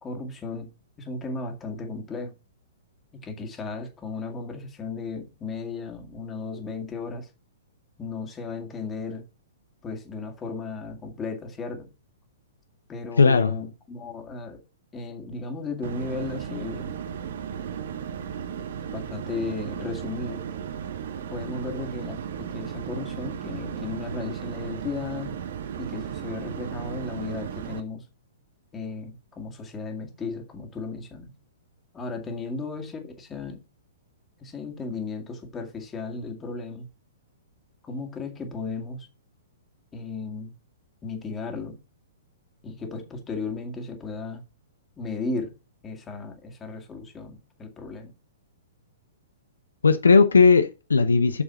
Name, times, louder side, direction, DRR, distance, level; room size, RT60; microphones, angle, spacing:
voice 1, 0.0-0.7 1.0-2.3 3.1-7.3 8.0-9.2 9.8-11.9 12.9-14.6 14.9-16.9 18.9-20.4 21.3-25.4 25.8-28.0 28.7-31.3 31.9-33.6 34.4-36.9 37.8-39.1 39.9-40.5 41.0-41.8 42.6-44.4 45.0-45.5 45.8-48.1, left 4 dB, 15° left, 2.1 m, -35 dB
voice 2, 13.2-13.5 49.8-51.4, left 4 dB, 70° left, 0.8 m, -17 dB
sound 1, 15.8-27.8, right 8 dB, 55° right, 1.0 m, -35 dB
7.1 x 7.0 x 5.7 m
figure-of-eight pair, 110°, 0 cm